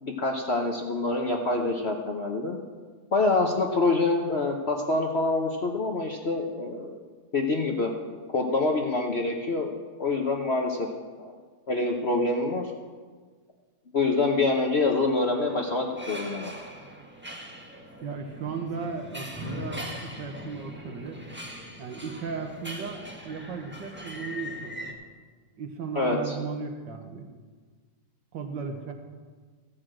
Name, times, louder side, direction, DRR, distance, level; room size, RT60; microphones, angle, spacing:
voice 1, 0.0-2.6 3.1-7.0 7.3-7.9 8.3-9.7 10.0-10.9 11.2-11.3 11.7-12.7 13.9-16.5 25.9-26.4, left 3 dB, 45° left, 1 dB, 0.9 m, -26 dB
sound 1, 14.8-24.9, equal, 5° right, 1.0 m, -41 dB
voice 2, 18.0-21.2 21.8-25.0 25.6-27.3 28.3-28.9, right 5 dB, 70° right, 5 dB, 1.8 m, -36 dB
14.5 x 6.2 x 7.6 m, 1.5 s
omnidirectional pair, 2.1 m